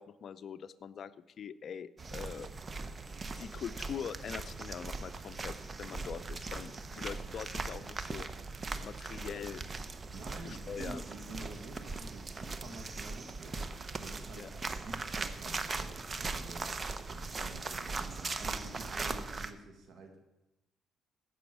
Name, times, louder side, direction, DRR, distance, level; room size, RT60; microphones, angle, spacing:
voice 1, 0.0-2.5 3.4-8.3 8.8-9.6 10.4-11.0 14.3-14.5, left 7 dB, 60° left, 14 dB, 0.5 m, -43 dB
sound 1, 2.0-19.5, right 3 dB, 35° right, 0.8 m, -40 dB
voice 2, 6.8-7.4 10.1-20.3, right 2 dB, 70° right, 4 dB, 1.9 m, -49 dB
15.5 x 6.2 x 6.2 m, 0.93 s
cardioid pair, 90°, 0 cm